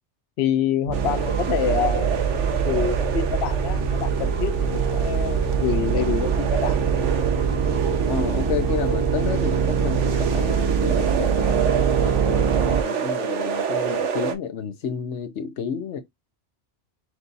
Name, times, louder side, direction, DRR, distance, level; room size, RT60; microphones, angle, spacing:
voice 1, 0.4-2.3 2.7-6.8, left 10 dB, 70° left, 0.8 m, -27 dB
sound 1, 0.9-12.8, right 6 dB, 45° right, 0.4 m, -23 dB
sound 2, 0.9-14.4, right 7 dB, 90° right, 1.2 m, -29 dB
voice 2, 8.1-16.0, left 7 dB, 85° left, 1.1 m, -31 dB
6.0 x 2.6 x 2.6 m
omnidirectional pair, 1.2 m